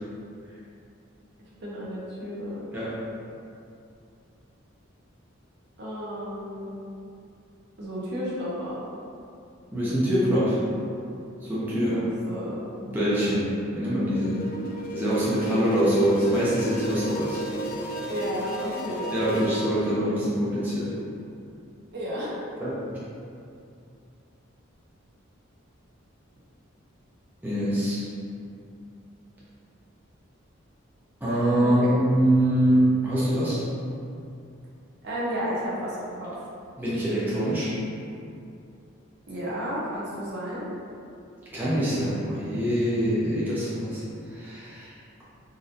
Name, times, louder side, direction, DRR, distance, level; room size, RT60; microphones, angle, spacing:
voice 1, 1.6-2.7 5.8-6.7 7.8-8.8 11.9-12.6 18.0-20.2 21.9-22.4 31.6-32.0 35.0-36.3 39.3-40.7, equal, 55° right, -6 dB, 0.8 m, -33 dB
voice 2, 9.7-10.6 11.4-12.0 12.8-14.5 14.9-17.4 19.1-21.0 22.6-22.7 27.4-28.1 31.2-33.6 36.8-37.7 41.5-44.0 44.3-44.9, equal, 10° right, -10 dB, 0.5 m, -24 dB
sound 1, 14.0-20.0, right 1 dB, 45° left, 0.4 m, -34 dB
4.0 x 2.6 x 2.5 m, 2.6 s
head